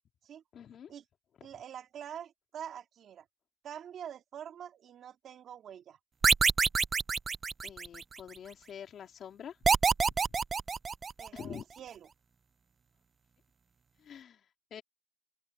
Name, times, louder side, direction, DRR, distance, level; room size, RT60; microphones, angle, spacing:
voice 1, 0.5-0.9 1.4-1.5 7.6-9.6 10.1-10.4 11.3-11.6 14.0-14.8, left 8 dB, 65° left, 3.0 m, -47 dB
voice 2, 1.4-3.3 3.6-6.0 11.2-12.0, right 9 dB, 65° right, 2.5 m, -45 dB
sound 1, 6.2-8.2 9.6-11.4, right 5 dB, 40° right, 0.5 m, -27 dB
open air
cardioid pair, 90°, 0 cm